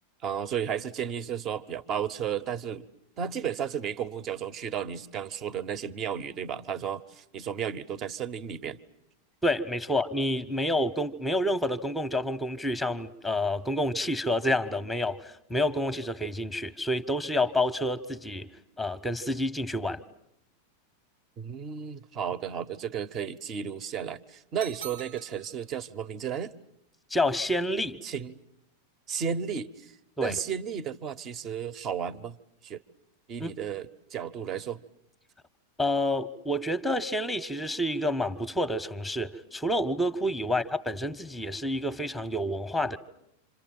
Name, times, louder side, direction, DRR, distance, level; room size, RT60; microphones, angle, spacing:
voice 1, 0.2-2.9 3.2-8.8 21.4-26.5 28.0-28.4 29.1-32.4 32.6-32.8 33.3-34.8, right 8 dB, 35° right, 1.0 m, -33 dB
voice 2, 9.4-18.5 18.8-20.0 27.1-28.0 30.2-30.3 33.4-33.5 35.8-43.0, left 1 dB, ahead, 1.0 m, -28 dB
sound 1, 24.6-25.7, right 8 dB, 65° right, 1.1 m, -43 dB
27.5 x 27.0 x 7.6 m
figure-of-eight pair, 90°, 0 cm